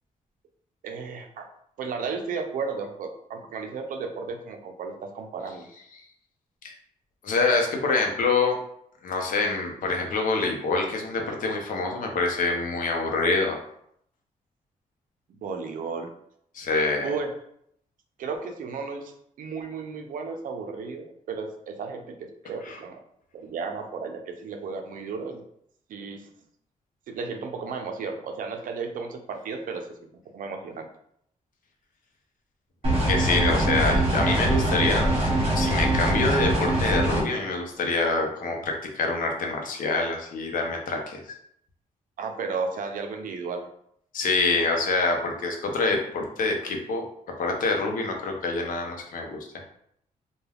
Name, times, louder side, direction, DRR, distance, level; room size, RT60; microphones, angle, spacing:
voice 1, 0.8-1.5 1.8-5.7 15.3-16.1 17.0-17.3 18.2-23.0 23.3-25.4 25.9-26.3 27.1-30.9 42.2-43.7, right 4 dB, 70° right, 5 dB, 0.5 m, -34 dB
voice 2, 7.2-8.6 9.0-13.6 16.5-17.1 22.7-22.8 33.1-35.1 35.5-41.2 44.1-47.0 47.4-49.4, left 3 dB, 70° left, 2 dB, 0.6 m, -26 dB
sound 1, 32.8-37.2, right 1 dB, 40° right, 1.0 m, -23 dB
2.2 x 2.2 x 3.3 m, 0.70 s
cardioid pair, 115°, 14 cm